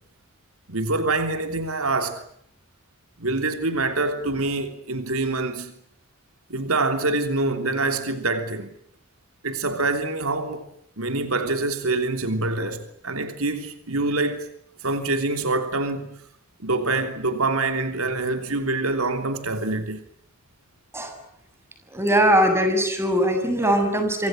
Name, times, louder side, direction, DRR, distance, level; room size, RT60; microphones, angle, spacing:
voice 1, 0.7-2.2 3.2-5.7 6.5-8.7 9.4-10.6 11.0-14.5 14.8-16.1 16.6-20.0, right 2 dB, 75° right, 3.2 m, -25 dB
voice 2, 21.9-24.3, equal, 10° right, 7.1 m, -20 dB
27.5 x 26.5 x 7.7 m
head